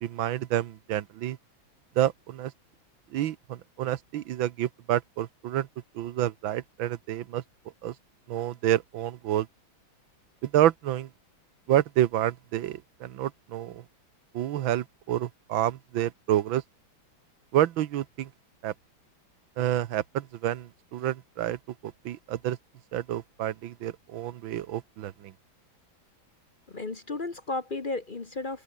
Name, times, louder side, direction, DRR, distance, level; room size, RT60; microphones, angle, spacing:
voice 1, 0.0-1.4 2.0-2.5 3.1-5.7 5.9-7.4 7.8-7.9 8.3-9.5 10.4-11.1 11.7-13.8 14.3-16.6 17.5-18.3 18.6-18.7 19.6-21.6 21.8-22.6 22.9-25.3, right 12 dB, 75° right, 1.6 m, -28 dB
voice 2, 26.7-28.6, left 3 dB, 30° left, 1.0 m, -33 dB
open air
omnidirectional pair, 2.2 m